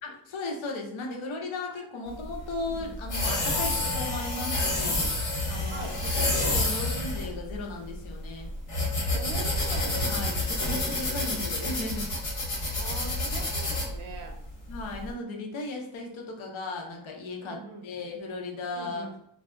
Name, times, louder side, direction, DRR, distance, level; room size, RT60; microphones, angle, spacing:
voice 1, 0.0-5.1 5.5-5.9 6.3-8.5 10.1-12.1 14.7-19.1, left 2 dB, 70° left, 1 dB, 0.7 m, -36 dB
sound 1, 2.1-15.1, left 2 dB, 90° left, 1.2 m, -29 dB
voice 2, 2.6-2.9 5.7-6.0 9.1-10.1 12.7-14.4 17.4-17.9 18.7-19.2, right 3 dB, 85° right, 3 dB, 0.7 m, -42 dB
Mallet percussion, 3.5-6.0, left 10 dB, 20° right, 0.3 m, -43 dB
2.3 x 2.0 x 3.5 m, 0.73 s
wide cardioid pair, 105°, 49 cm